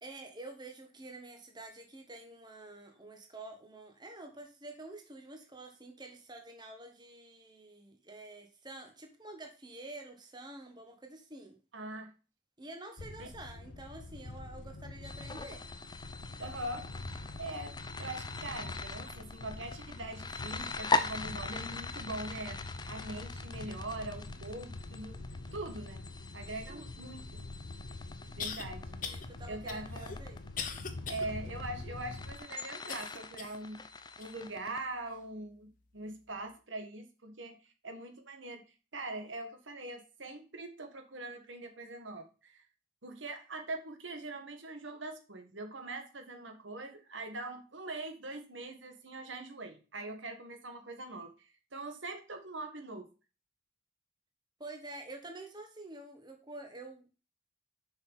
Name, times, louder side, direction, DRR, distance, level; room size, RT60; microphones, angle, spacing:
voice 1, 0.0-11.6 12.6-15.6 26.7-26.9 29.0-30.4 54.6-57.2, right 2 dB, 20° right, 4 dB, 1.3 m, -48 dB
voice 2, 11.7-12.1 13.2-13.3 16.4-16.9 17.4-25.2 25.5-26.0 26.3-27.4 28.4-29.0 29.5-30.1 31.1-33.8 34.2-38.6 38.9-42.6 43.0-53.1, right 2 dB, 80° right, 6 dB, 1.6 m, -42 dB
sound 1, 13.0-32.4, left 2 dB, 85° left, 0.9 m, -45 dB
sound 2, 15.0-34.8, left 3 dB, 20° left, 0.6 m, -41 dB
sound 3, 27.4-27.5 28.4-28.6 29.0-29.3 29.7-31.3 31.7-31.8 32.9-33.6 34.2-34.3 35.1-35.2, left 6 dB, 45° left, 1.0 m, -40 dB
6.8 x 5.7 x 5.5 m, 0.34 s
head